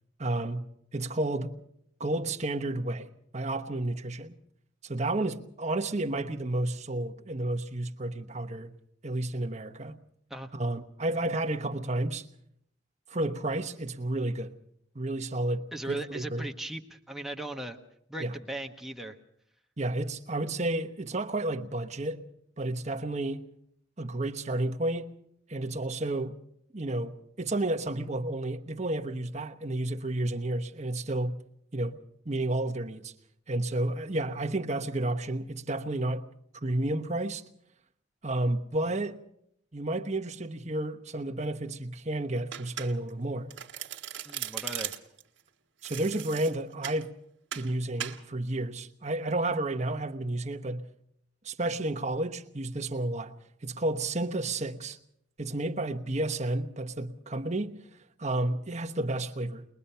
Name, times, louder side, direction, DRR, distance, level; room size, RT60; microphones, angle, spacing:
voice 1, 0.2-0.7 0.9-1.5 2.0-4.4 4.8-8.7 9.0-10.0 10.5-12.2 13.1-14.5 14.9-16.5 18.2-18.3 19.8-22.2 22.6-23.4 24.0-25.1 25.5-26.4 26.7-31.4 31.7-32.0 32.2-33.1 33.5-36.2 36.5-37.4 38.2-39.2 39.7-43.5 45.8-47.1 47.5-50.9 51.4-53.3 53.6-55.0 55.4-57.7 58.2-59.7, right 2 dB, 35° right, 1.1 m, -31 dB
voice 2, 15.7-17.8 18.1-19.2 44.2-44.9, right 1 dB, ahead, 1.0 m, -38 dB
Domestic sounds home sounds, 42.5-43.2 43.5-45.2 45.8-47.0 47.5-47.7 48.0-48.2, right 11 dB, 70° right, 1.4 m, -38 dB
21.5 x 21.0 x 5.6 m
head